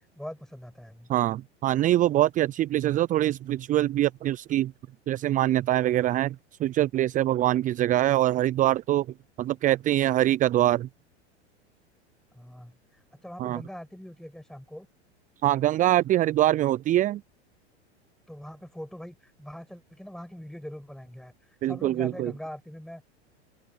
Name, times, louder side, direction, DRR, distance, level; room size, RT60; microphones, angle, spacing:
voice 1, 0.2-1.1 12.3-14.9 18.3-21.3 21.7-23.0, equal, ahead, 7.0 m, -42 dB
voice 2, 1.1-4.7 5.1-9.1 9.4-10.9 13.4-13.6 15.4-17.2 21.6-22.3, right 14 dB, 25° right, 0.5 m, -24 dB
figure-of-eight pair, 90°, 34 cm